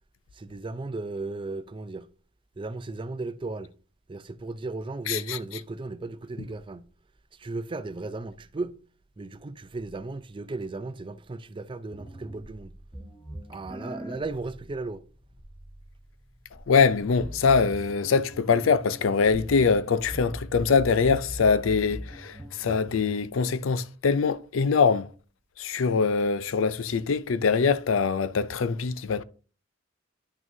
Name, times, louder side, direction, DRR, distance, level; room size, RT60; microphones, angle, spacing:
voice 1, 0.3-2.1 2.6-3.7 4.1-6.9 7.4-8.8 9.2-12.8 13.5-15.0, right 3 dB, 25° right, 0.4 m, -35 dB
voice 2, 5.1-5.4 16.7-25.1 25.6-29.2, left 5 dB, 80° left, 0.5 m, -23 dB
sound 1, 11.9-23.2, equal, 10° left, 1.4 m, -42 dB
10.5 x 6.0 x 2.7 m
head